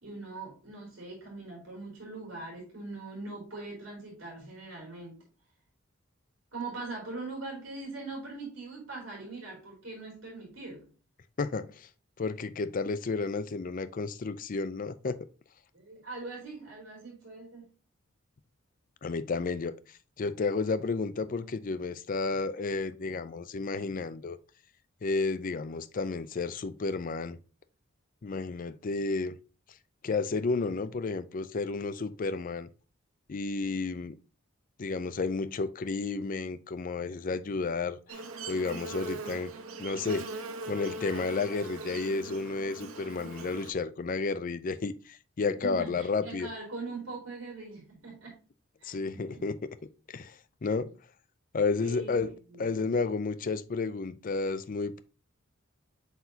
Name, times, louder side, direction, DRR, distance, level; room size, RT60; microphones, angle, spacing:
voice 1, 0.0-5.2 6.5-10.9 15.7-17.7 45.4-48.4 48.8-49.0 49.3-49.4 51.8-52.2 52.5-52.6, right 3 dB, 65° right, 3.8 m, -41 dB
voice 2, 11.4-11.9 12.2-15.2 19.0-19.7 20.2-24.4 25.0-27.4 28.2-29.4 30.0-32.7 33.3-34.1 34.8-38.2 38.5-39.5 39.8-40.3 40.7-46.5 48.8-49.6 50.1-50.3 50.6-50.9 51.5-55.0, left 4 dB, 40° left, 0.4 m, -32 dB
Buzz, 38.1-43.7, right 3 dB, 90° right, 1.0 m, -40 dB
7.7 x 4.7 x 2.8 m
head